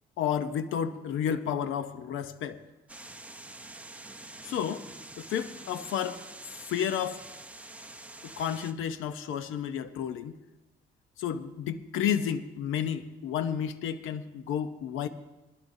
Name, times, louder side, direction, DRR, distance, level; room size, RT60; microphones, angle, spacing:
voice 1, 0.2-2.6 4.4-4.8 5.2-6.2 6.7-7.2 8.2-10.4 11.2-15.1, left 8 dB, 85° left, 11 dB, 0.9 m, -31 dB
sound 1, 2.9-8.7, right 2 dB, 5° right, 0.9 m, -46 dB
20.5 x 15.0 x 2.7 m, 1.0 s
cardioid pair, 90°, 20 cm